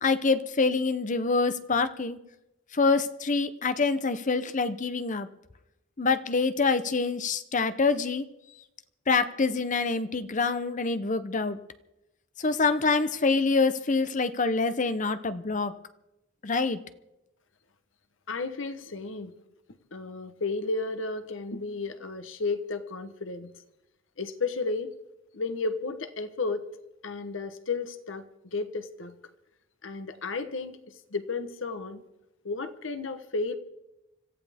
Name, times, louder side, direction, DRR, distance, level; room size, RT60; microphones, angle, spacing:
voice 1, 0.0-2.2 2.7-5.3 6.0-8.3 9.1-11.6 12.4-15.7 16.4-16.8, left 4 dB, 40° left, 12 dB, 0.8 m, -26 dB
voice 2, 18.3-19.3 19.9-23.5 24.2-25.0 25.3-26.7 27.0-28.2 28.5-29.2 29.8-30.8 31.1-32.0 32.4-33.5, left 3 dB, 70° left, 10 dB, 1.1 m, -33 dB
25.5 x 14.5 x 3.6 m, 0.91 s
head